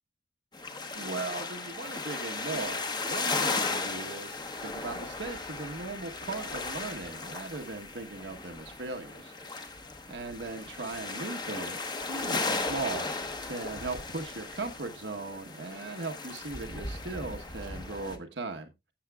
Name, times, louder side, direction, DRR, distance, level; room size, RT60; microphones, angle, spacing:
sound 1, 0.5-18.2, left 3 dB, 25° left, 0.9 m, -36 dB
voice 1, 0.9-9.8 10.1-13.0 13.4-18.9, right 3 dB, 80° right, 5 dB, 1.2 m, -38 dB
13.0 x 7.8 x 2.3 m, 0.22 s
head